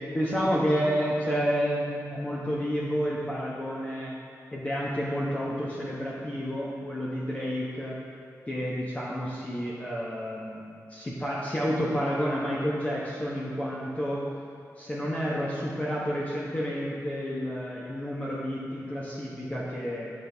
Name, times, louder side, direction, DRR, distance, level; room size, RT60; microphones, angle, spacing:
voice 1, 0.1-4.1 4.5-8.0 8.5-10.6 10.9-14.2 14.8-20.1, equal, 20° left, -6 dB, 1.0 m, -30 dB
9.9 x 4.1 x 3.5 m, 2.6 s
cardioid pair, 75°, 6 cm